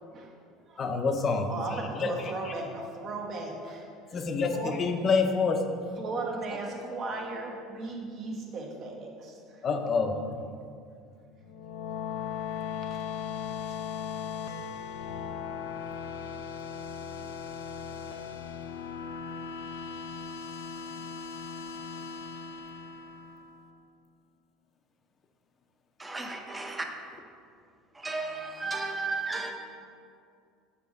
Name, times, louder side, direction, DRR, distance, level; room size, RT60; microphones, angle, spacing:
voice 1, 0.8-2.1 2.4-2.5 4.1-5.7 9.6-10.2, left 4 dB, 40° left, 0.6 m, -27 dB
voice 2, 1.5-4.8 6.0-9.7 10.6-10.7 11.5-11.6 13.7-13.8, right 3 dB, 50° right, 1.1 m, -37 dB
sound 1, 11.4-23.8, left 7 dB, 85° left, 0.4 m, -38 dB
voice 3, 26.0-26.9 27.9-29.5, right 3 dB, 15° right, 0.7 m, -34 dB
5.7 x 3.8 x 5.2 m
supercardioid pair, 95°, 0 cm